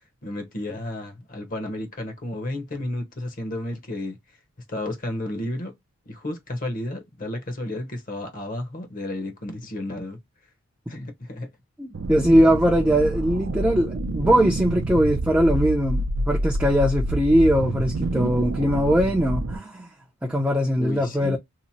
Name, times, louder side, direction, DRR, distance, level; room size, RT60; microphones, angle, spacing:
voice 1, 0.2-4.4 4.7-5.7 6.1-10.2 10.9-11.5 20.8-21.4, left 1 dB, 40° left, 0.8 m, -32 dB
voice 2, 11.8-19.9 20.2-21.4, equal, 10° right, 0.5 m, -21 dB
sound 1, 11.9-19.6, right 1 dB, 55° right, 0.5 m, -27 dB
2.9 x 2.1 x 4.1 m
head